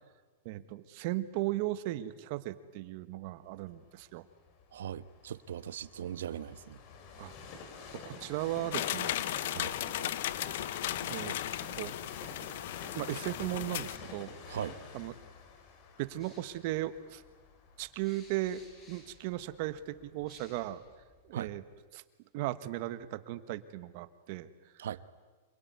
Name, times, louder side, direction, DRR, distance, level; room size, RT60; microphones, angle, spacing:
voice 1, 0.4-4.2 7.2-7.3 8.0-9.2 11.1-11.3 11.8-12.0 12.9-14.4 14.9-15.1 16.0-17.2 17.8-20.8 21.2-21.6 21.9-22.0 22.3-24.5, right 15 dB, 45° right, 13 dB, 1.4 m, -36 dB
Train, 3.7-19.6 20.2-20.3, left 4 dB, 40° left, 3.6 m, -49 dB
voice 2, 4.7-6.8 9.5-9.7 14.5-14.7 21.3-21.5 24.8-25.0, right 10 dB, 85° right, 14 dB, 1.1 m, -39 dB
sound 1, 8.7-14.0, left 13 dB, 60° left, 0.9 m, -36 dB
sound 2, 16.2-21.8, left 3 dB, 20° left, 5.6 m, -61 dB
27.0 x 22.5 x 9.7 m, 1.4 s
supercardioid pair, 160°, 0 cm